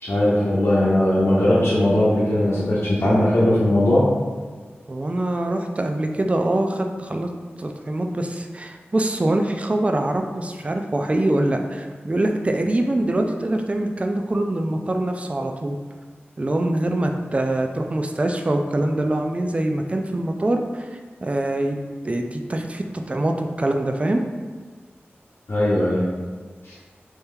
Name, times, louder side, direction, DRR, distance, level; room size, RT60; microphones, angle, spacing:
voice 1, 0.0-4.1 25.5-26.1 26.6-26.7, left 1 dB, 65° left, -9 dB, 0.9 m, -19 dB
voice 2, 4.9-7.3 7.6-15.8 16.4-21.8 22.0-24.2, right 1 dB, 30° right, 4 dB, 0.3 m, -24 dB
3.2 x 2.9 x 3.6 m, 1.5 s
wide cardioid pair, 65°, 4 cm